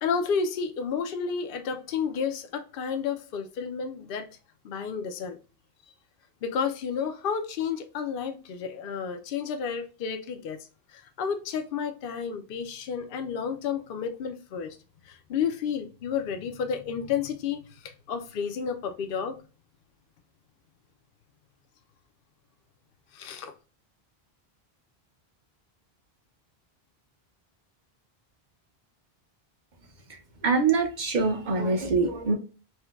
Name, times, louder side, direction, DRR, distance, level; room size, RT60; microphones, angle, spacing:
voice 1, 0.0-4.3 4.6-5.4 6.4-10.6 10.9-14.8 15.1-19.4 23.1-23.5, left 6 dB, 65° left, 0.7 m, -31 dB
voice 2, 30.1-32.3, right 4 dB, 50° right, 0.8 m, -25 dB
4.4 x 2.1 x 2.3 m
omnidirectional pair, 1.0 m